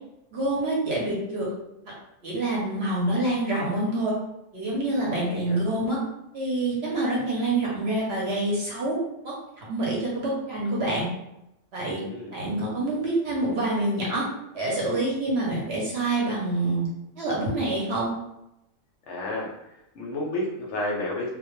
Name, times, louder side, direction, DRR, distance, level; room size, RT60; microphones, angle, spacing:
voice 1, 0.3-1.5 2.2-4.1 4.5-6.0 6.3-9.0 9.2-11.1 11.7-12.0 12.3-14.3 14.5-16.9 17.2-18.1, right 2 dB, 60° right, -4 dB, 0.8 m, -26 dB
voice 2, 5.1-5.6 12.0-12.3 19.1-21.3, left 1 dB, 65° left, -3 dB, 0.8 m, -32 dB
2.2 x 2.1 x 2.9 m, 0.86 s
omnidirectional pair, 1.4 m